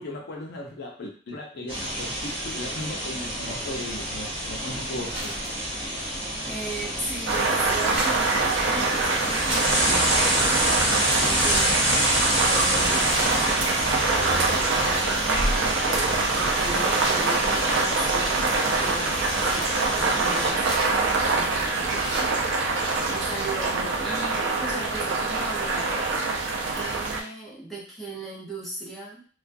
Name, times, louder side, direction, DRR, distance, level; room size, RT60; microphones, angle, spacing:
voice 1, 0.0-5.3, left 1 dB, 60° left, 0 dB, 0.5 m, -37 dB
sound 1, 1.7-20.5, right 1 dB, 30° right, 0.8 m, -28 dB
sound 2, 4.4-22.5, right 1 dB, 60° right, 1.1 m, -39 dB
voice 2, 6.5-19.7 20.0-22.8 23.1-26.0 26.7-29.3, right 1 dB, ahead, -6 dB, 0.6 m, -37 dB
sound 3, 7.3-27.2, right 3 dB, 80° right, 0.4 m, -25 dB
2.4 x 2.2 x 2.5 m, 0.41 s
head